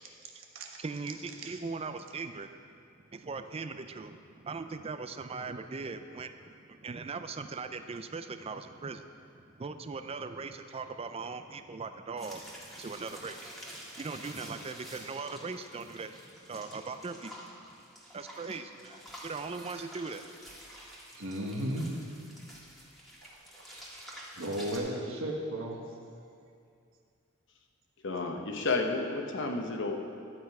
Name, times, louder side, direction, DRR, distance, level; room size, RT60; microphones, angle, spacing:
voice 1, 0.8-2.5 3.0-17.7 18.1-20.3, right 4 dB, 30° right, 9 dB, 0.4 m, -40 dB
sound 1, 12.2-24.8, equal, ahead, 1.7 m, -49 dB
voice 2, 21.1-21.9 24.3-25.8, right 1 dB, 80° right, 1 dB, 1.3 m, -34 dB
voice 3, 28.0-30.0, left 3 dB, 65° left, 3 dB, 1.0 m, -31 dB
12.0 x 8.0 x 4.8 m, 2.4 s
head